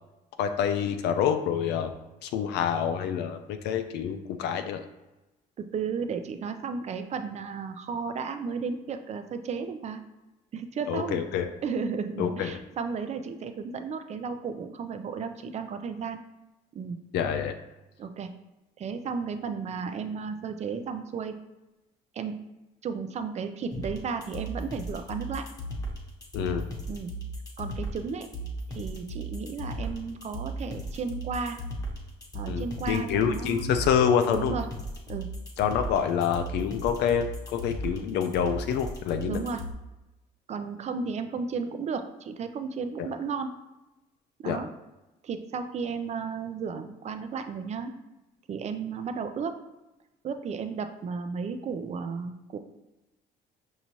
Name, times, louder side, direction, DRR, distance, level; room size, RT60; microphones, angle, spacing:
voice 1, 0.4-1.9 2.2-4.8 10.9-11.5 12.2-12.6 17.1-17.5 26.3-26.7 32.5-34.5 35.6-39.4 43.0-43.1 44.4-44.6, left 8 dB, 80° left, 7 dB, 0.4 m, -27 dB
voice 2, 5.6-10.0 10.5-11.2 11.6-16.2 16.7-17.0 18.0-18.3 18.8-21.4 22.1-22.4 22.8-25.4 26.9-27.1 27.6-28.3 28.7-31.6 32.3-33.7 34.3-34.7 35.1-35.3 39.2-39.6 40.5-43.5 44.4-44.7 45.2-47.9 48.5-49.6 50.2-52.6, right 5 dB, 40° right, 8 dB, 0.5 m, -34 dB
sound 1, 23.7-39.7, right 1 dB, 20° left, 1.0 m, -36 dB
5.4 x 2.7 x 3.0 m, 1.0 s
cardioid pair, 110°, 17 cm